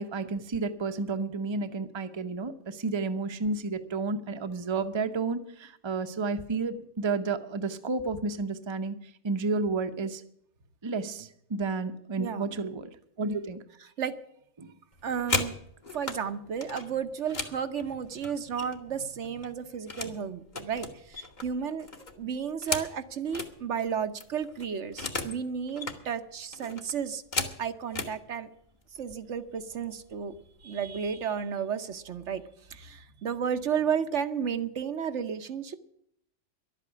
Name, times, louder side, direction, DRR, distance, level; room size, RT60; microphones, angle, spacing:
voice 1, 0.0-9.0 9.2-10.2 10.8-12.9 13.2-13.6 14.6-14.7, right 3 dB, 25° right, 8 dB, 0.8 m, -31 dB
voice 2, 12.2-12.5 14.0-14.2 15.0-15.6 15.9-21.9 22.2-27.2 27.6-28.5 28.9-30.3 30.6-32.4 32.7-35.8, right 7 dB, 70° right, 9 dB, 1.2 m, -33 dB
sound 1, 14.9-16.2 16.6-18.9 19.2-20.2 20.5-23.5 23.9-24.0 24.2-25.4 25.7-26.0 26.5-28.2 29.0-29.1 29.5-29.8 30.1-30.6, left 3 dB, 40° left, 1.5 m, -35 dB
11.5 x 8.3 x 9.8 m, 0.72 s
omnidirectional pair, 1.3 m